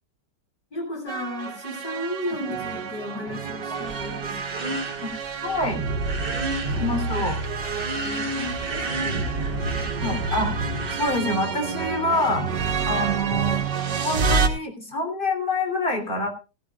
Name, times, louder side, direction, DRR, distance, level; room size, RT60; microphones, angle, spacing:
voice 1, 0.7-4.9 7.9-9.7, left 1 dB, 80° left, -3 dB, 8.7 m, -35 dB
sound 1, 1.1-14.5, right 4 dB, 85° right, 2.1 m, -28 dB
sound 2, 3.7-11.2, right 2 dB, 35° right, 1.6 m, -34 dB
voice 2, 5.4-5.8 6.8-7.4 10.0-10.5 11.0-12.5 12.9-13.6 14.0-16.3, left 1 dB, 30° left, 4 dB, 3.7 m, -26 dB
17.5 x 16.0 x 2.4 m, 0.30 s
omnidirectional pair, 1.8 m